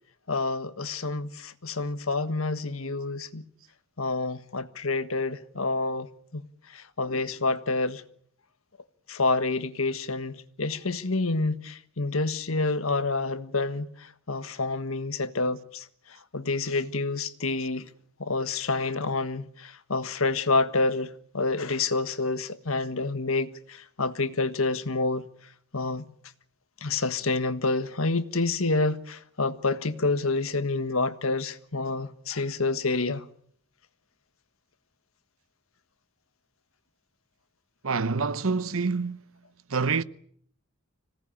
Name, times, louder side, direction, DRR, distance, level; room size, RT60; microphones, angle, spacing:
voice 1, 0.3-3.4 4.0-6.4 6.7-8.0 9.1-15.8 16.3-17.9 18.2-25.3 25.7-26.0 26.8-33.2, left 3 dB, 80° left, 1.5 m, -28 dB
voice 2, 37.8-39.3 39.7-40.0, right 4 dB, 75° right, 1.0 m, -27 dB
26.0 x 18.0 x 8.7 m
head